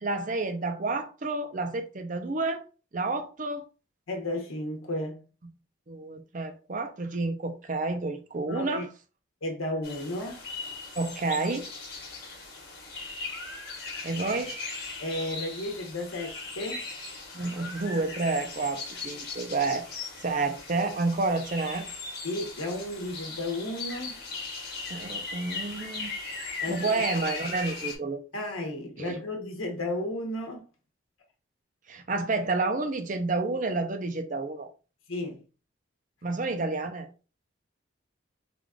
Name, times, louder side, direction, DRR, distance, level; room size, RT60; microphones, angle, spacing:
voice 1, 0.0-2.6 2.9-3.6 5.9-8.9 11.0-11.7 14.0-14.5 17.3-21.9 24.9-26.1 26.7-28.2 29.0-29.2 31.9-34.7 36.2-37.1, right 3 dB, 40° right, 0.5 m, -30 dB
voice 2, 4.1-5.2 8.4-8.8 9.4-10.4 15.0-16.9 22.2-24.2 26.6-27.0 28.3-30.7 35.1-35.4, left 1 dB, 90° left, 1.0 m, -33 dB
sound 1, 9.8-28.0, left 3 dB, 50° left, 1.2 m, -38 dB
3.4 x 2.4 x 3.6 m
head